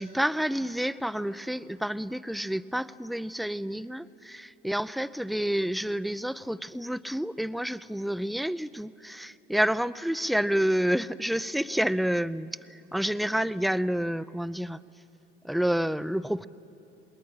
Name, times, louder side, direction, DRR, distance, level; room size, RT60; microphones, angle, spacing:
voice 1, 0.0-14.8 15.4-16.5, equal, ahead, 15 dB, 0.6 m, -29 dB
28.0 x 20.5 x 8.8 m, 2.8 s
hypercardioid pair, 60°, 30 cm